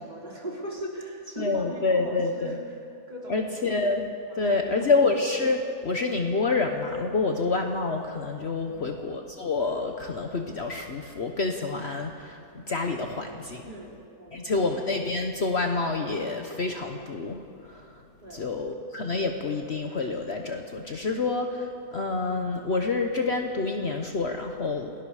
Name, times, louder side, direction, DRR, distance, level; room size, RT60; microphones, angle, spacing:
voice 1, 0.0-2.8 3.1-3.8 4.3-4.9 8.6-9.0 13.6-14.7 18.2-18.5, right 1 dB, 30° right, -4 dB, 4.4 m, -40 dB
voice 2, 1.4-2.6 3.3-4.1 4.4-13.7 14.3-17.9 18.3-24.9, left 3 dB, 50° left, 4 dB, 1.2 m, -28 dB
29.0 x 19.0 x 4.9 m, 2.4 s
omnidirectional pair, 1.6 m